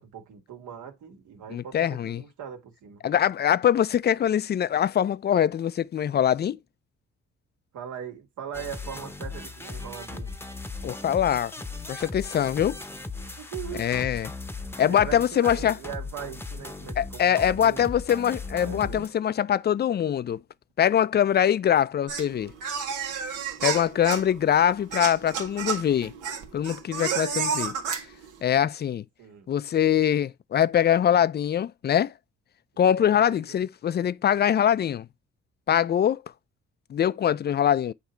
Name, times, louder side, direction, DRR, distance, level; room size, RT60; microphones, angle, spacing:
voice 1, 0.0-3.0 7.7-10.3 13.4-13.9 14.9-17.9 18.5-19.1 29.2-29.5 33.0-33.6, right 8 dB, 75° right, 1.9 m, -40 dB
voice 2, 1.5-2.2 3.0-6.6 10.8-11.5 11.9-12.8 13.8-14.3 14.8-15.8 17.0-20.4 20.8-22.5 23.6-26.1 26.5-28.0 28.4-29.0 29.5-32.1 32.8-35.1 35.7-36.2 36.9-37.9, left 9 dB, 35° left, 0.4 m, -23 dB
sound 1, 8.5-19.1, left 3 dB, 10° left, 0.8 m, -37 dB
sound 2, 22.1-28.3, right 6 dB, 90° right, 1.5 m, -31 dB
8.2 x 2.8 x 4.4 m
cardioid pair, 90°, 30 cm